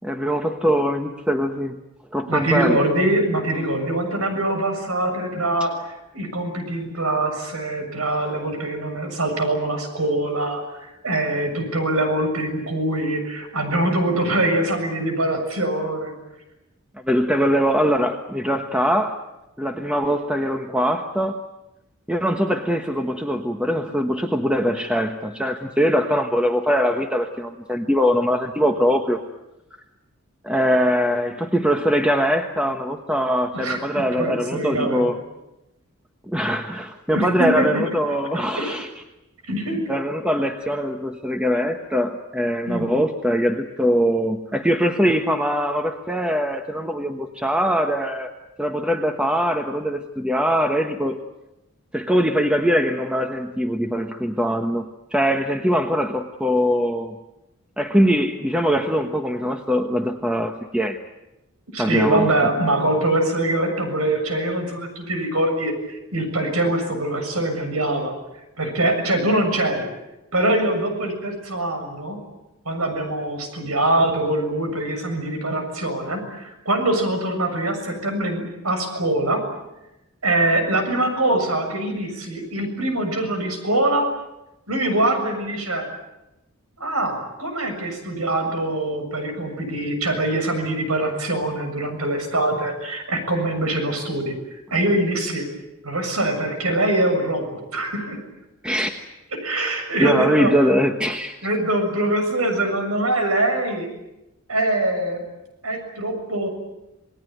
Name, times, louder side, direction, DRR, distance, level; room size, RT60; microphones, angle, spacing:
voice 1, 0.0-1.8 2.1-2.8 17.0-19.2 19.6-21.4 22.1-29.2 30.4-35.2 36.3-38.9 39.9-48.3 48.6-51.2 51.9-57.1 57.8-61.0 61.8-62.5 98.6-99.0 100.0-101.4, equal, 5° right, 4 dB, 1.2 m, -22 dB
voice 2, 2.3-16.1 33.5-33.8 34.1-35.1 37.1-37.6 38.6-38.8 39.5-39.8 42.7-42.9 61.7-68.1 68.6-69.9 70.3-72.2 72.7-79.4 80.2-84.1 84.7-85.9 86.8-95.5 95.8-98.2 99.4-100.5 101.4-103.9 104.5-105.2 105.6-106.5, right 1 dB, 90° right, 6 dB, 7.0 m, -23 dB
28.5 x 19.5 x 9.3 m, 0.94 s
head